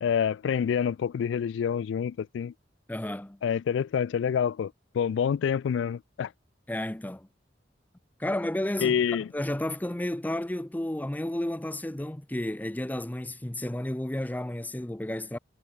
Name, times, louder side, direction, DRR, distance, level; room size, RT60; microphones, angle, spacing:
voice 1, 0.0-2.5 3.4-6.3 8.8-9.3, left 7 dB, 70° left, 0.3 m, -27 dB
voice 2, 2.9-3.4 6.7-7.3 8.2-9.0 9.3-15.4, left 1 dB, 10° left, 0.5 m, -32 dB
head